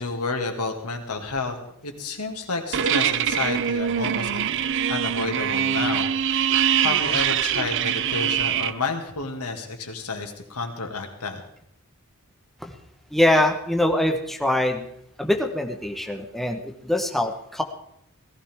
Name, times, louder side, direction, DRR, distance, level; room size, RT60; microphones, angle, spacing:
voice 1, 0.0-1.6 1.8-4.5 4.9-11.4, left 3 dB, 90° left, 4 dB, 2.1 m, -30 dB
sound 1, 2.7-8.7, right 9 dB, 55° right, 0.5 m, -23 dB
voice 2, 13.1-14.9 15.2-17.6, left 1 dB, ahead, 3 dB, 1.1 m, -23 dB
17.5 x 15.0 x 3.6 m, 0.75 s
head